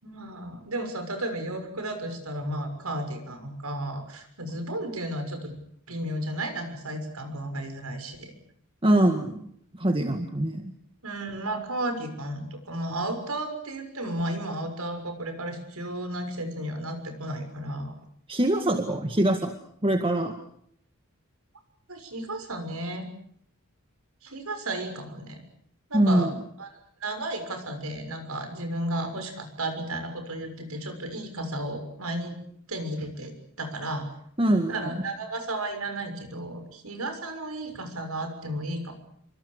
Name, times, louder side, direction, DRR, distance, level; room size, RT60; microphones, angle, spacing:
voice 1, 0.0-5.5 5.9-8.3 11.0-17.9 21.9-23.1 24.2-25.4 25.9-26.3 26.6-26.7 27.0-32.3 32.7-34.1 34.7-38.9, right 1 dB, 90° right, 7 dB, 6.6 m, -33 dB
voice 2, 8.8-9.4 9.7-10.7 18.3-19.5 19.8-20.4 25.9-26.3 34.4-34.8, right 1 dB, 25° right, 6 dB, 1.9 m, -23 dB
28.5 x 25.0 x 6.7 m, 0.66 s
head